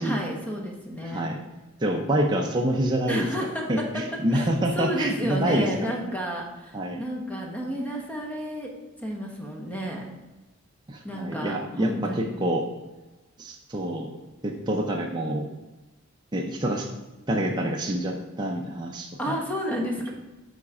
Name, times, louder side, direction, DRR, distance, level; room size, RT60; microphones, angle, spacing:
voice 1, 0.0-1.3 3.1-4.0 4.3-4.5 4.8-8.7 9.0-10.1 11.0-12.3 19.2-20.1, equal, 10° left, 0 dB, 1.2 m, -31 dB
voice 2, 1.0-1.4 1.8-3.3 3.7-6.1 6.7-7.0 10.9-12.6 13.4-14.1 14.4-15.5 16.3-16.9 17.3-19.4, right 1 dB, 20° right, 0 dB, 0.6 m, -27 dB
7.3 x 4.1 x 4.9 m, 1.1 s
head